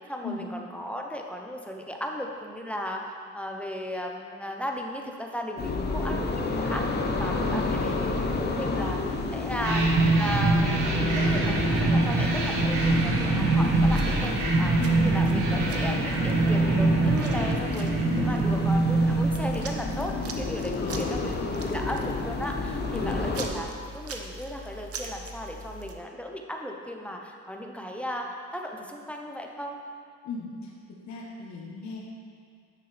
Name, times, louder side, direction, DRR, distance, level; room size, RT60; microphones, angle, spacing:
voice 1, 0.1-6.9 7.1-9.0 9.3-21.3 21.6-23.7 23.9-29.8, equal, 5° left, 1 dB, 0.8 m, -36 dB
sound 1, 5.6-23.5, left 3 dB, 35° left, 0.9 m, -31 dB
voice 2, 7.4-8.0 14.8-15.3 18.1-18.3 20.7-21.2 22.9-23.1 30.2-30.7 31.1-32.0, left 4 dB, 65° left, -3 dB, 1.3 m, -36 dB
sound 2, 9.6-20.2, right 3 dB, 85° right, 1.4 m, -24 dB
sound 3, 13.6-25.9, right 2 dB, 50° right, 0.8 m, -42 dB
9.6 x 6.1 x 3.5 m, 2.2 s
cardioid pair, 90°, 30 cm